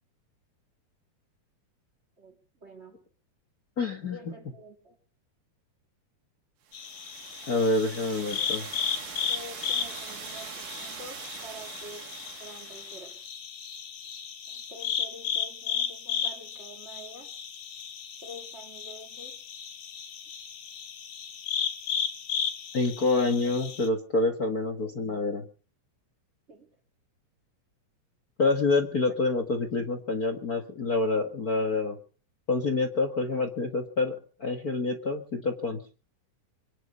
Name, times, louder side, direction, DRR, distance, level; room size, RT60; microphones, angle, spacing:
voice 1, 2.2-3.0 4.0-5.0 9.3-12.1 12.4-13.2 14.5-17.3 18.2-19.4 23.6-23.7 26.5-26.7 29.1-29.2, equal, 25° right, 4 dB, 2.0 m, -47 dB
voice 2, 3.8-4.3 7.4-8.7 22.7-25.4 28.4-32.0 32.5-35.8, left 3 dB, 40° left, 6 dB, 1.3 m, -27 dB
sound 1, 6.7-23.9, left 8 dB, 75° left, 3.4 m, -35 dB
sound 2, 6.7-13.2, right 8 dB, 70° right, 3.1 m, -43 dB
25.0 x 10.0 x 5.5 m, 0.39 s
omnidirectional pair, 3.8 m